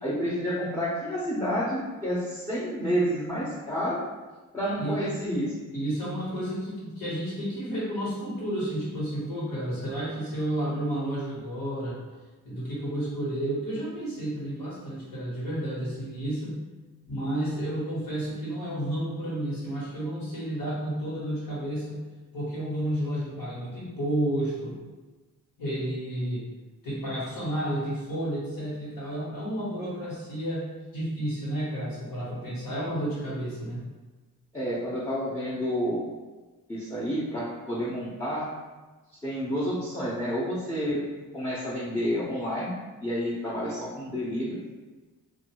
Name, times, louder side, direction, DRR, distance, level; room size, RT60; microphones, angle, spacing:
voice 1, 0.0-4.0 4.5-5.5 34.5-36.0 36.7-38.5 39.2-41.0 41.3-42.7 43.0-44.6, equal, 10° left, -8 dB, 0.6 m, -29 dB
voice 2, 5.7-12.0 12.4-16.6 17.1-22.0 22.3-24.8 25.6-26.5 26.8-30.6 30.9-33.9, right 1 dB, 75° left, -7 dB, 1.3 m, -31 dB
2.6 x 2.3 x 2.9 m, 1.2 s
wide cardioid pair, 95°, 35 cm